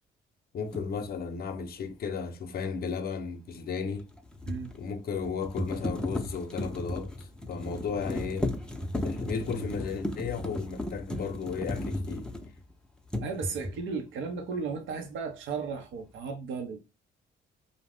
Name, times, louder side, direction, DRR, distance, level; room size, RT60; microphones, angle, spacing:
voice 1, 0.5-4.1 4.7-8.5 9.0-12.3, left 5 dB, 50° left, 0.6 m, -34 dB
sound 1, 0.7-0.9 3.9-12.7 13.1-13.9, left 1 dB, 5° left, 0.5 m, -35 dB
voice 2, 13.2-16.8, right 5 dB, 80° right, 0.7 m, -35 dB
2.5 x 2.0 x 3.3 m
cardioid pair, 90°, 20 cm